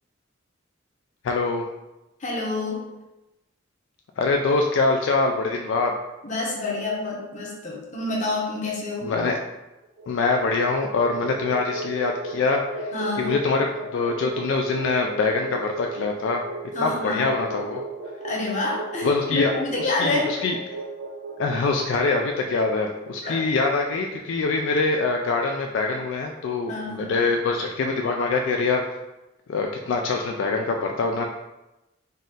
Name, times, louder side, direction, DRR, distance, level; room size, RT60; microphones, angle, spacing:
voice 1, 1.2-1.6 4.2-5.9 9.0-9.4 10.1-12.9 13.2-16.4 16.8-17.8 19.0-19.5 19.8-20.5 21.4-28.8 29.5-31.2, left 3 dB, 70° left, 2 dB, 0.3 m, -24 dB
voice 2, 2.2-2.9 6.2-9.1 12.9-13.3 16.7-17.2 18.2-20.3 23.2-23.3 26.7-27.1, left 2 dB, 40° left, -3 dB, 0.9 m, -28 dB
sound 1, 9.8-24.1, right 2 dB, 60° right, 0.8 m, -36 dB
4.1 x 2.5 x 3.7 m, 1.0 s
head